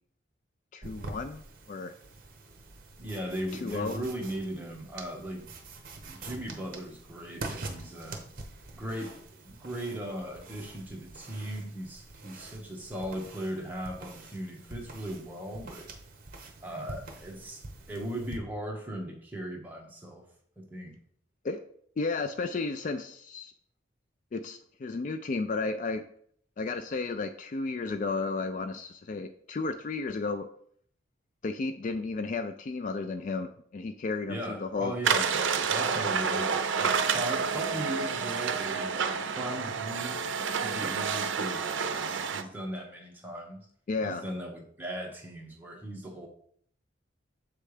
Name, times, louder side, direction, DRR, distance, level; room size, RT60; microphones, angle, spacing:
voice 1, 0.7-1.9 3.6-4.0 21.4-21.6 22.0-23.5 24.3-26.0 26.6-30.5 31.4-35.0 43.9-44.3, left 3 dB, 40° left, 8 dB, 0.3 m, -33 dB
sound 1, 0.8-18.4, right 3 dB, 45° right, 0.8 m, -45 dB
voice 2, 3.0-5.5 6.0-8.2 8.7-9.1 9.4-15.9 16.6-20.2 20.6-20.9 34.3-40.2 40.6-43.6 44.0-46.3, right 1 dB, 10° right, -1 dB, 1.1 m, -38 dB
sound 2, 35.0-42.4, right 6 dB, 75° right, 0.5 m, -29 dB
7.1 x 3.3 x 4.9 m, 0.62 s
head